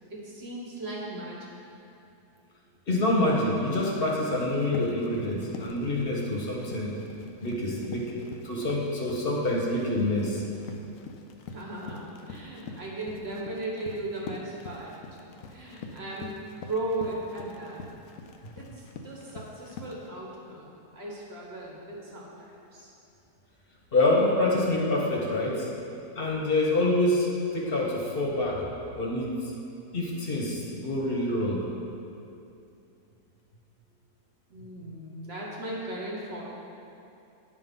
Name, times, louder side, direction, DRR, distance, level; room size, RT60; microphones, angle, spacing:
voice 1, 0.1-1.5 11.5-16.3 16.6-17.9 18.6-22.9 34.5-36.4, right 1 dB, 40° right, -4 dB, 1.6 m, -37 dB
voice 2, 2.9-6.9 7.4-8.2 8.4-10.4 23.9-25.7 26.2-28.7 29.0-29.4 29.9-31.7, left 1 dB, 40° left, -2 dB, 1.2 m, -26 dB
Run, 4.1-20.1, left 3 dB, 65° left, 0.9 m, -45 dB
10.5 x 3.8 x 5.5 m, 2.7 s
omnidirectional pair, 1.7 m